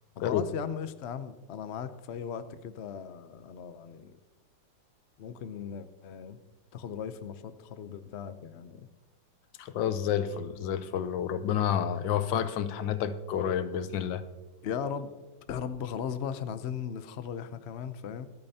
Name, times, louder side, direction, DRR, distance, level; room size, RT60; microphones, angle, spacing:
voice 1, 0.2-4.1 5.2-6.4 6.7-8.9 14.6-15.1 15.5-18.3, left 7 dB, 65° left, 11 dB, 0.6 m, -37 dB
voice 2, 9.6-14.2, left 9 dB, 85° left, 12 dB, 1.4 m, -29 dB
25.5 x 8.7 x 2.8 m, 1.1 s
omnidirectional pair, 2.0 m